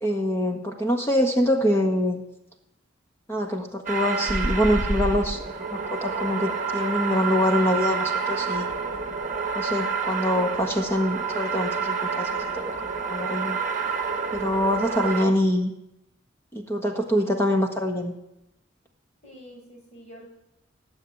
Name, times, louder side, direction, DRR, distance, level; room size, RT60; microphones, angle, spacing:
voice 1, 0.0-2.2 3.3-5.4 5.7-8.7 9.5-12.6 13.1-13.6 14.3-15.7 16.5-18.1, left 1 dB, 15° left, 2 dB, 1.5 m, -24 dB
sound 1, 3.9-15.3, right 5 dB, 40° right, 1.2 m, -28 dB
voice 2, 19.2-20.3, equal, 35° left, 0 dB, 5.2 m, -47 dB
19.0 x 7.5 x 8.5 m, 0.86 s
head